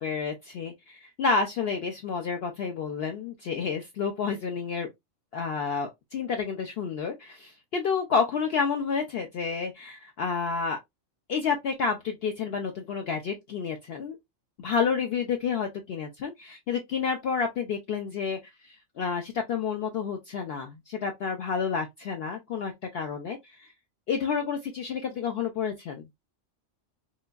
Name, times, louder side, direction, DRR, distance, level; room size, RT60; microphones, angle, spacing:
voice 1, 0.0-4.9 5.3-10.8 11.3-14.2 14.6-18.4 18.7-23.7 24.1-26.0, left 5 dB, 60° left, 0.7 m, -30 dB
3.7 x 2.5 x 2.3 m
omnidirectional pair, 1.3 m